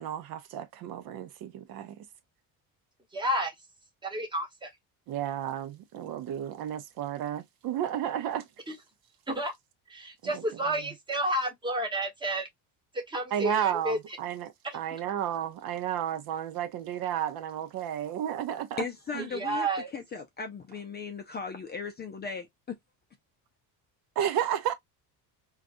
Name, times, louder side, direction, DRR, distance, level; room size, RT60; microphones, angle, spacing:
voice 1, 0.0-1.9 5.1-8.5 10.2-10.4 13.3-18.8 19.1-19.3 24.2-24.7, right 10 dB, 55° right, 0.6 m, -32 dB
voice 2, 3.1-3.5 4.0-4.7 8.7-8.8 9.3-9.5 9.9-12.5 12.9-14.0 14.6-14.8 19.3-19.9, right 1 dB, 10° right, 1.0 m, -31 dB
voice 3, 18.8-22.8, left 5 dB, 25° left, 0.4 m, -37 dB
3.8 x 2.4 x 2.5 m
cardioid pair, 125°, 42 cm